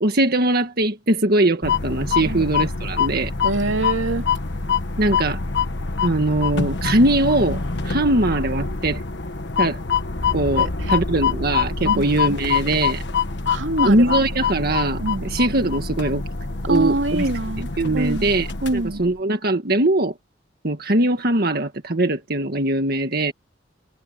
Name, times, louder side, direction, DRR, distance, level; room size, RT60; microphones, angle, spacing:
voice 1, 0.0-3.3 5.0-5.4 6.0-9.0 9.6-9.8 10.3-13.0 13.8-16.2 16.7-17.3 17.8-18.5 18.7-20.1 20.6-23.3, right 2 dB, 55° right, 1.7 m, -21 dB
sound 1, 1.6-19.1, left 5 dB, 65° left, 1.4 m, -25 dB
voice 2, 3.4-4.2 10.6-10.9 11.8-12.2 13.5-14.1 14.5-14.7 15.0-15.3 16.7-17.7 17.9-18.3 18.6-19.0, right 2 dB, 85° right, 2.6 m, -24 dB
head